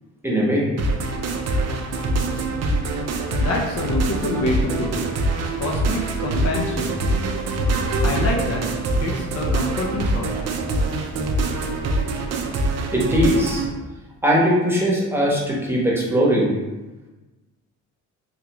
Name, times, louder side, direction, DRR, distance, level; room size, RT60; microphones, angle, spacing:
voice 1, 0.2-0.7 12.9-13.6 14.2-16.5, equal, 10° right, -4 dB, 0.9 m, -20 dB
sound 1, 0.8-13.7, right 2 dB, 60° right, 0.5 m, -24 dB
voice 2, 3.2-5.1 5.6-6.9 8.0-8.7 9.0-10.3, left 2 dB, 50° left, -1 dB, 0.6 m, -26 dB
3.5 x 2.4 x 3.0 m, 1.1 s
cardioid pair, 90°, 30 cm